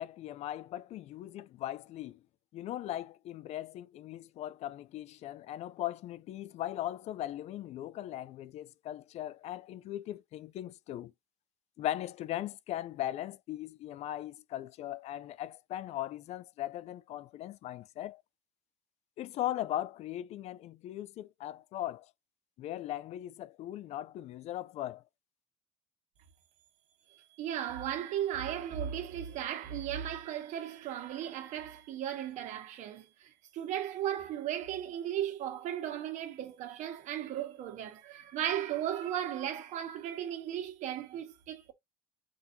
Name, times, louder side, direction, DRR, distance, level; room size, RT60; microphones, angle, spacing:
voice 1, 0.0-2.2 2.5-11.1 11.8-18.2 19.2-22.1 22.6-25.0, left 13 dB, 50° left, 0.4 m, -39 dB
voice 2, 27.1-41.7, right 10 dB, 65° right, 1.6 m, -36 dB
6.0 x 2.8 x 2.7 m
cardioid pair, 130°, 14 cm